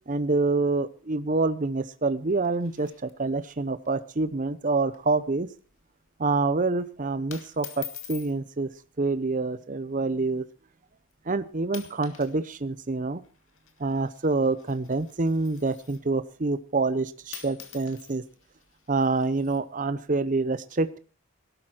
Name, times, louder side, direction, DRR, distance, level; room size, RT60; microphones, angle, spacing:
voice 1, 0.1-5.5 6.2-8.7 9.0-10.4 11.3-13.2 13.8-18.2 18.9-21.0, right 3 dB, 40° right, 14 dB, 0.7 m, -27 dB
sound 1, 2.3-3.6 3.8-3.9 4.2-4.5 4.9-5.2 5.5-5.8 6.6-6.8 7.3-8.3 9.3-9.6 10.3-10.4 11.1-11.3 11.6-12.4 12.6-16.1 17.0-17.1 17.3-19.6, left 10 dB, 65° left, 2.2 m, -46 dB
18.0 x 12.0 x 4.4 m, 0.37 s
head